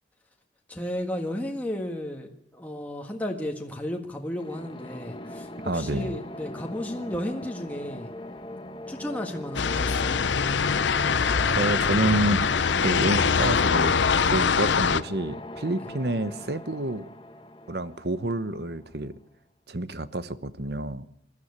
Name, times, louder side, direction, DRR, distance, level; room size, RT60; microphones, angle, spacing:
voice 1, 0.7-8.1 8.9-10.2, left 1 dB, 10° left, 1 dB, 1.7 m, -33 dB
sound 1, 4.4-19.1, left 1 dB, 30° left, 1.4 m, -41 dB
voice 2, 5.6-6.2 11.5-12.5 12.8-14.0 14.2-17.0 17.7-19.2 19.7-21.0, right 2 dB, 60° right, 14 dB, 1.1 m, -28 dB
sound 2, 9.5-15.0, left 6 dB, 90° left, 0.7 m, -23 dB
20.5 x 13.5 x 9.7 m, 0.75 s
head